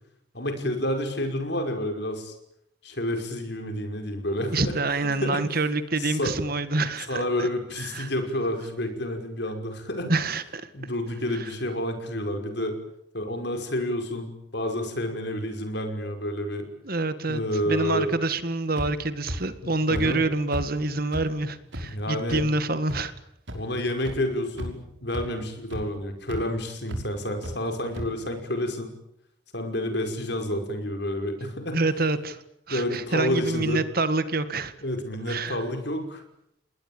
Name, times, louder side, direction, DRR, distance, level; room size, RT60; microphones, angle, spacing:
voice 1, 0.3-2.4 2.8-4.7 5.0-5.6 6.0-6.3 7.1-10.1 10.7-12.8 13.1-16.7 17.3-18.2 19.6-20.2 21.8-22.5 23.5-28.9 29.5-31.8 32.7-33.8 34.8-36.2, left 1 dB, 55° left, 6 dB, 5.5 m, -29 dB
voice 2, 4.5-7.5 7.8-8.1 10.1-10.7 11.3-11.5 16.8-23.1 31.7-34.7 35.3-35.6, right 2 dB, 45° right, 12 dB, 1.8 m, -27 dB
sound 1, 18.8-18.9 19.3-19.4 19.9-20.0 20.5-20.6 21.1-21.2 21.7-21.8 22.3-22.4 22.9-23.0 23.5-23.6 24.0-24.1 24.5-24.8 25.1-25.2 25.7-25.8 26.3-26.4 26.9-27.0 27.4-27.5 27.9-28.0, equal, 65° right, 5.8 m, -32 dB
30.0 x 20.5 x 8.8 m, 0.75 s
head